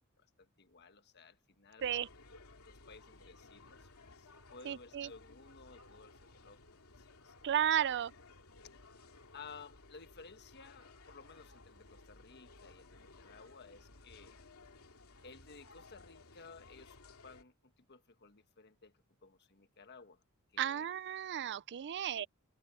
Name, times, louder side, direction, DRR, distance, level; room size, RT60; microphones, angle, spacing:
voice 1, 0.2-1.8 2.7-3.9 4.2-6.6 7.0-7.3 7.8-8.0 9.3-14.4 15.2-18.9 19.2-20.2 20.5-20.8 22.1-22.3, left 4 dB, 50° left, 1.4 m, -56 dB
sound 1, 1.8-17.4, left 3 dB, 75° left, 2.8 m, -58 dB
voice 2, 4.6-5.1 7.4-8.1 20.6-22.3, right 10 dB, 55° right, 0.4 m, -33 dB
head